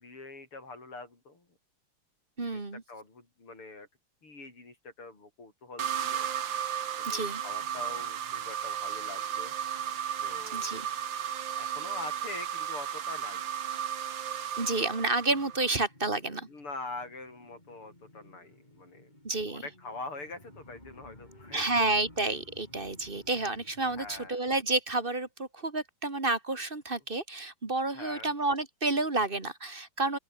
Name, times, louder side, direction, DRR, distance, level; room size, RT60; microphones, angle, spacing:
voice 1, 0.0-1.5 2.4-3.9 4.2-6.3 7.1-9.5 10.2-10.9 11.6-13.5 16.5-19.1 19.5-21.7 23.9-24.4 27.9-28.3, left 3 dB, 85° left, 7.6 m, -44 dB
voice 2, 2.4-2.8 7.0-7.4 10.5-10.9 14.6-16.5 19.2-19.6 21.5-30.2, right 2 dB, 25° right, 2.2 m, -30 dB
sound 1, 5.8-15.8, right 9 dB, 60° right, 2.0 m, -34 dB
sound 2, 7.5-14.4 14.8-24.3, left 1 dB, 20° left, 5.7 m, -57 dB
open air
omnidirectional pair, 2.4 m